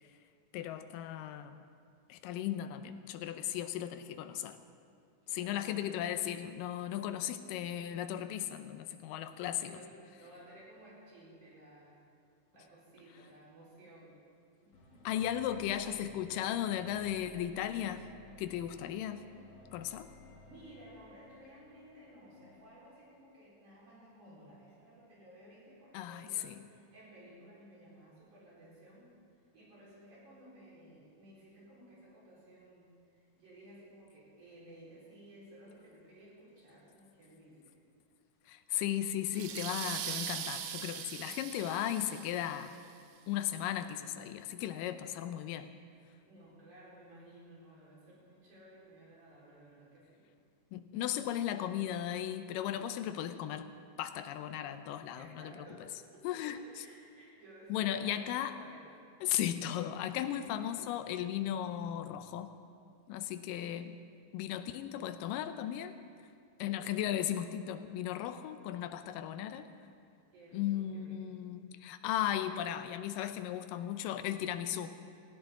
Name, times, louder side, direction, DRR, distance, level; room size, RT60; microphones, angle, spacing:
voice 1, 0.5-1.6 2.1-4.6 5.3-9.7 15.1-18.1 18.4-19.3 19.7-20.1 25.9-26.6 38.5-42.7 43.3-45.7 50.7-53.7 54.0-55.5 56.2-56.6 57.7-58.5 59.2-62.5 63.1-64.0 64.3-66.0 66.6-69.7 70.5-75.0, left 11 dB, 85° left, 10 dB, 2.3 m, -36 dB
voice 2, 5.2-6.1 9.6-12.0 12.5-14.2 14.6-15.5 20.4-29.1 29.5-37.8 46.3-50.2 55.2-58.9 66.6-67.4 70.3-71.4, right 1 dB, 65° right, -7 dB, 5.9 m, -56 dB
sound 1, 14.7-23.8, left 2 dB, 50° left, 2.5 m, -58 dB
sound 2, 39.3-42.8, right 9 dB, 80° right, 2.3 m, -41 dB
18.0 x 16.0 x 3.8 m, 2.3 s
omnidirectional pair, 3.8 m